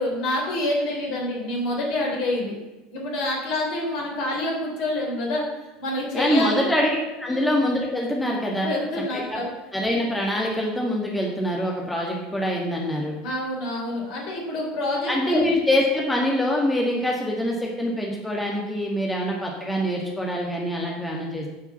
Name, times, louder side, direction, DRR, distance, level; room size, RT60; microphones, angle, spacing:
voice 1, 0.0-2.5 2.9-6.7 7.3-7.5 8.6-9.5 13.2-15.4, left 1 dB, 50° left, -1 dB, 3.7 m, -27 dB
voice 2, 6.1-8.7 9.1-9.4 9.7-13.2 15.1-21.5, left 1 dB, 10° left, -1 dB, 2.0 m, -24 dB
9.8 x 5.9 x 7.0 m, 1.1 s
figure-of-eight pair, 75°, 0 cm